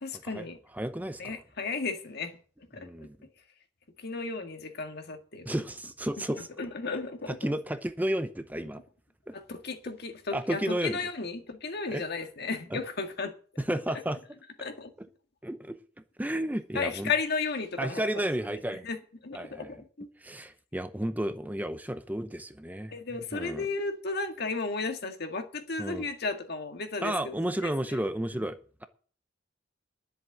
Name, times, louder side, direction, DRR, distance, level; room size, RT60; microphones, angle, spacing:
voice 1, 0.0-0.6 1.2-2.4 2.7-3.1 4.0-5.5 6.3-7.4 9.3-13.3 14.6-14.9 16.7-18.1 18.8-19.0 19.2-20.1 22.9-28.0 28.3-28.4, left 4 dB, 60° left, 1.9 m, -34 dB
voice 2, 0.7-1.4 2.8-3.2 5.5-6.5 7.3-8.8 9.3-9.4 10.3-11.0 11.9-12.0 12.7-12.8 13.6-14.2 15.4-15.8 16.2-17.1 17.8-18.9 19.3-19.7 20.2-22.9 23.3-23.7 25.8-26.0 27.0-28.8, right 1 dB, 10° right, 0.7 m, -32 dB
10.5 x 7.7 x 8.4 m
head